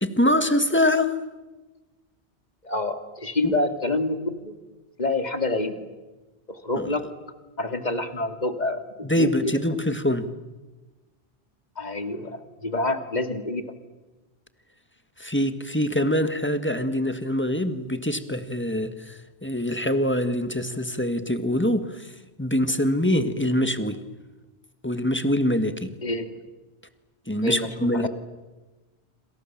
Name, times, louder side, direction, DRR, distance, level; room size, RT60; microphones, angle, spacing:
voice 1, 0.0-1.2 3.4-3.6 6.8-6.9 9.0-10.3 15.2-22.1 22.4-24.0 24.8-25.9 27.3-28.1, left 1 dB, 10° left, 9 dB, 1.6 m, -24 dB
voice 2, 2.6-4.5 5.0-5.8 6.5-7.1 7.6-9.5 11.8-13.7 26.0-26.4 27.4-28.1, left 2 dB, 40° left, 8 dB, 2.4 m, -27 dB
27.5 x 27.0 x 7.4 m, 1.2 s
omnidirectional pair, 1.1 m